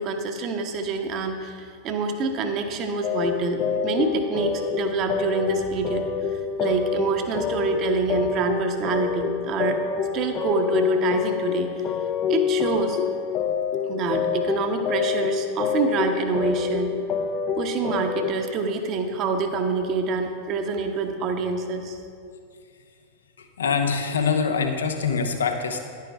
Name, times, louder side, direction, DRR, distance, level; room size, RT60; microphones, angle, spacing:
voice 1, 0.0-9.8 10.1-11.8 12.3-13.0 13.9-16.9 17.6-22.0, right 4 dB, 35° right, 5 dB, 1.0 m, -26 dB
sound 1, 3.0-18.3, left 7 dB, 35° left, 0.6 m, -27 dB
voice 2, 23.6-25.8, left 5 dB, 70° left, 6 dB, 0.9 m, -24 dB
11.0 x 9.3 x 3.5 m, 2.2 s
figure-of-eight pair, 90°, 0 cm